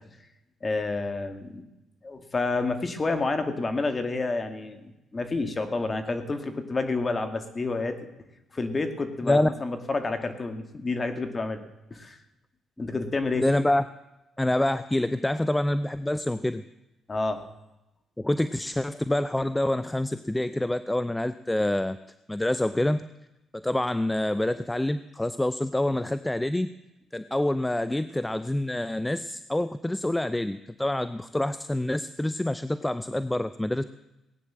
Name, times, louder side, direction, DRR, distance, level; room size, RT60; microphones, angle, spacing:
voice 1, 0.6-1.6 2.0-8.0 8.5-11.6 11.9-12.2 12.8-13.5 17.1-17.4, left 3 dB, 30° left, 8 dB, 2.1 m, -29 dB
voice 2, 13.4-13.8 14.4-16.6 18.2-22.0 22.3-23.0 23.5-26.7 27.1-33.8, left 1 dB, 10° left, 13 dB, 0.6 m, -26 dB
18.5 x 9.4 x 7.5 m, 0.96 s
cardioid pair, 90°, 0 cm